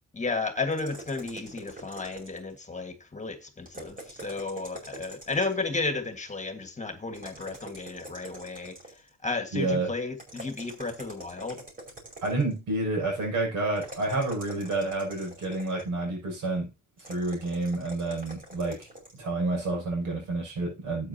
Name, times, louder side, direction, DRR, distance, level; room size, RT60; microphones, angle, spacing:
voice 1, 0.1-11.6, left 3 dB, 25° left, 1.6 m, -33 dB
sound 1, 0.7-2.6 3.6-5.7 7.1-9.1 10.2-12.5 13.8-16.0 17.0-19.2, right 1 dB, 30° right, 5.2 m, -45 dB
voice 2, 9.5-9.9 12.2-16.7 17.1-18.9 19.2-21.1, right 2 dB, 85° right, 6.6 m, -29 dB
12.5 x 8.7 x 2.8 m
cardioid pair, 90°, 30 cm